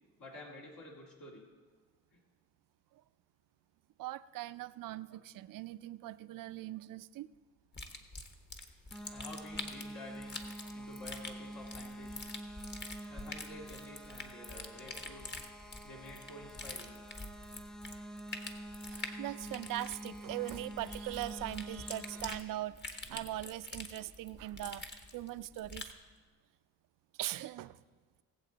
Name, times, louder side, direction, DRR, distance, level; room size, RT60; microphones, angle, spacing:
voice 1, 0.2-1.4 2.1-2.2 9.1-10.4 10.7-12.2 13.1-15.4 15.8-17.0, left 1 dB, 65° left, -3 dB, 2.3 m, -50 dB
voice 2, 4.0-7.3 10.6-10.9 18.9-25.9 27.2-27.8, right 15 dB, 70° right, 15 dB, 0.5 m, -41 dB
sound 1, 7.7-26.0, left 2 dB, 30° left, 1.3 m, -46 dB
sound 2, 8.9-22.4, right 1 dB, ahead, 0.5 m, -47 dB
20.0 x 7.5 x 4.0 m, 1.4 s
cardioid pair, 90°, 35 cm